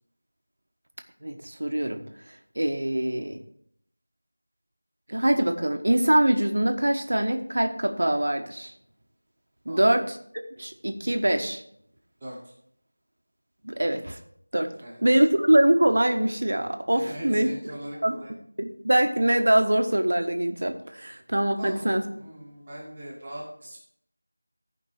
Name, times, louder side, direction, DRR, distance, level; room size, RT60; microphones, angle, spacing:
voice 1, 1.2-2.0 2.6-3.4 5.1-8.7 9.7-10.2 10.6-11.6 13.6-14.2 14.5-14.7 15.0-17.5 18.0-18.2 18.6-22.0, right 1 dB, 55° right, 6 dB, 1.2 m, -23 dB
voice 2, 12.2-12.5 14.8-15.0 16.9-18.3 21.6-23.8, right 1 dB, 15° right, -10 dB, 1.8 m, -40 dB
14.5 x 5.3 x 4.9 m, 0.69 s
figure-of-eight pair, 170°, 0 cm